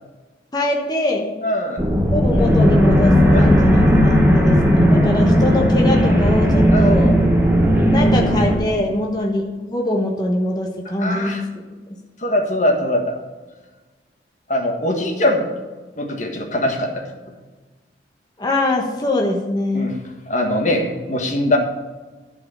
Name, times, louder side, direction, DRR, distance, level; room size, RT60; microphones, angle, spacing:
voice 1, 0.5-1.4 2.1-7.2 7.9-11.4 18.4-19.9, left 1 dB, 25° left, 0 dB, 1.2 m, -23 dB
voice 2, 1.4-1.8 3.3-3.5 6.7-6.9 11.0-11.4 12.2-13.1 14.5-15.5 16.0-17.1 19.7-20.0 20.3-21.6, left 1 dB, 40° left, 2 dB, 1.6 m, -21 dB
sound 1, 1.8-8.6, equal, 10° right, 1.3 m, -15 dB
11.5 x 4.9 x 8.4 m, 1.3 s
head